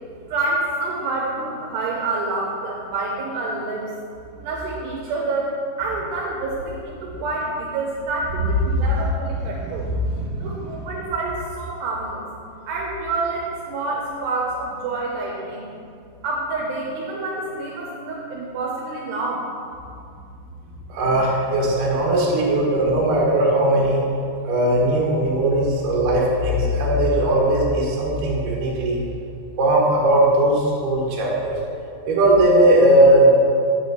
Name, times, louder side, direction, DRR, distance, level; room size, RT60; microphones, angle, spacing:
voice 1, 0.3-3.9 4.4-5.5 5.8-9.9 10.4-12.2 12.7-15.7 16.2-19.5, right 3 dB, 80° right, -2 dB, 2.7 m, -27 dB
voice 2, 10.0-10.5 20.9-24.0 24.4-29.0 29.6-31.6 32.1-33.3, right 1 dB, 60° right, -3 dB, 2.5 m, -18 dB
8.5 x 4.1 x 6.6 m, 2.4 s
omnidirectional pair, 5.1 m